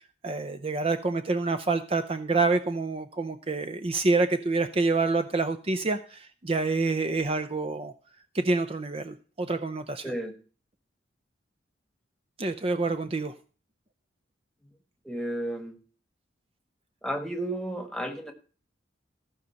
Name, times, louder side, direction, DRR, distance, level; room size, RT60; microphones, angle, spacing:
voice 1, 0.2-7.9 8.3-10.1 12.4-13.3, right 3 dB, 30° right, 0.6 m, -27 dB
voice 2, 10.0-10.3 15.0-15.8 17.0-18.3, right 1 dB, 5° left, 1.5 m, -32 dB
15.0 x 5.3 x 6.9 m
head